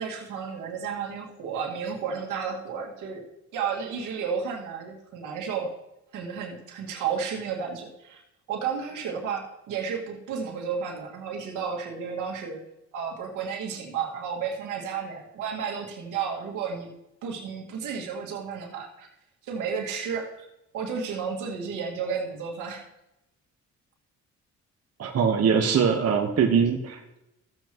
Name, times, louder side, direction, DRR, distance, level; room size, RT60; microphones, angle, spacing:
voice 1, 0.0-3.2 3.5-5.7 6.1-8.2 8.5-12.6 12.9-16.9 17.2-19.1 19.4-20.5 20.7-22.8, right 6 dB, 90° right, 0 dB, 2.1 m, -32 dB
voice 2, 25.0-27.2, right 6 dB, 55° right, 2 dB, 1.2 m, -22 dB
14.5 x 8.0 x 3.0 m, 0.89 s
cardioid pair, 90°, 30 cm